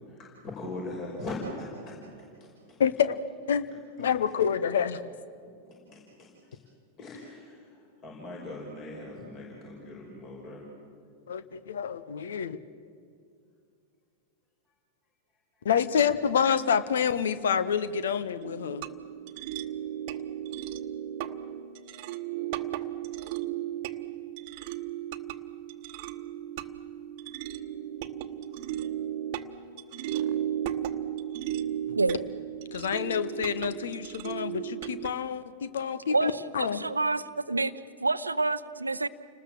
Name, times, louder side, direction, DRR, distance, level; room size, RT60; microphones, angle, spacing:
voice 1, 0.0-2.0 2.4-2.8 5.4-6.6 7.0-10.6, left 2 dB, 35° left, -1 dB, 5.5 m, -40 dB
voice 2, 2.8-3.2 3.5-3.7 4.0-5.0 11.3-12.6 15.6-18.8 32.7-36.8, left 7 dB, 65° left, 14 dB, 1.1 m, -27 dB
sound 1, 18.4-35.1, right 11 dB, 45° right, 1.1 m, -35 dB
voice 3, 36.1-39.1, right 3 dB, 80° right, 14 dB, 0.7 m, -28 dB
30.0 x 20.0 x 7.6 m, 2.4 s
figure-of-eight pair, 90°, 0 cm